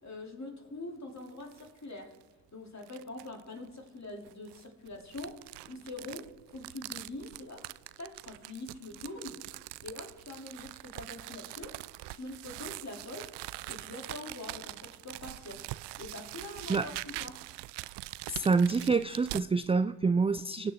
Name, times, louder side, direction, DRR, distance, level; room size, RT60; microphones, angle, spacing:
voice 1, 0.0-2.1 2.5-5.4 5.7-7.6 8.0-9.4 9.8-11.8 12.1-13.3 13.7-15.7 16.0-17.4, left 2 dB, 35° left, 1 dB, 3.2 m, -44 dB
sound 1, 1.2-1.7 2.1-2.2 2.8-3.4 4.2-19.5, right 18 dB, 65° right, 0.5 m, -43 dB
voice 2, 18.3-20.7, right 4 dB, 15° right, 13 dB, 0.3 m, -27 dB
22.0 x 8.9 x 3.7 m, 1.2 s
hypercardioid pair, 40°, 44 cm